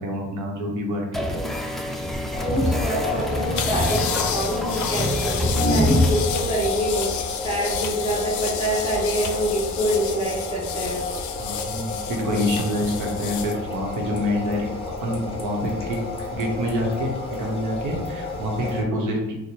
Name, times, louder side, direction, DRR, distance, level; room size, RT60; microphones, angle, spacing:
voice 1, 0.0-1.3 11.4-14.7 15.0-16.0 16.3-17.1 17.4-19.3, equal, 80° right, 0 dB, 0.9 m, -26 dB
sound 1, 1.1-6.2, left 1 dB, ahead, 0.3 m, -24 dB
sound 2, 2.3-18.8, left 3 dB, 20° left, 0.8 m, -31 dB
voice 2, 2.4-11.1, equal, 20° right, -5 dB, 0.9 m, -26 dB
sound 3, 3.5-13.5, left 8 dB, 75° left, 0.4 m, -31 dB
3.0 x 2.1 x 4.1 m, 1.0 s
cardioid pair, 90°, 30 cm